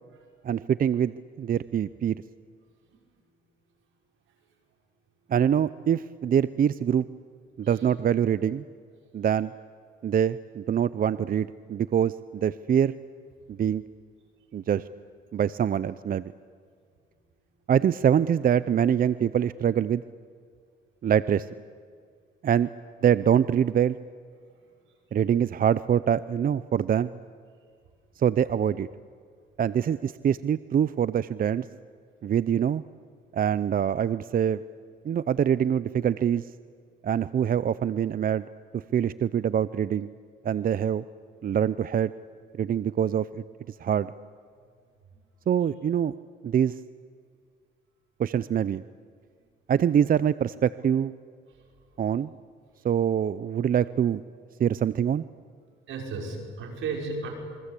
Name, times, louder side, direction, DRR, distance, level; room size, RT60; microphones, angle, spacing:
voice 1, 0.4-2.2 5.3-7.0 7.6-8.6 9.1-9.5 10.0-12.9 13.5-13.8 14.5-14.8 15.3-16.3 17.7-20.0 21.0-21.5 22.4-22.7 23.0-24.0 25.1-27.1 28.2-28.9 29.6-31.7 32.2-32.8 33.3-34.6 35.0-36.5 37.0-38.4 38.7-40.1 40.4-41.0 41.4-42.1 42.6-44.1 45.5-46.1 46.4-46.8 48.2-48.8 49.7-51.1 52.0-52.3 52.8-54.2 54.6-55.2, right 9 dB, 45° right, 16 dB, 0.6 m, -24 dB
voice 2, 55.9-57.3, right 4 dB, 80° right, 2 dB, 6.0 m, -34 dB
27.5 x 23.5 x 8.4 m, 2.1 s
cardioid pair, 90°, 20 cm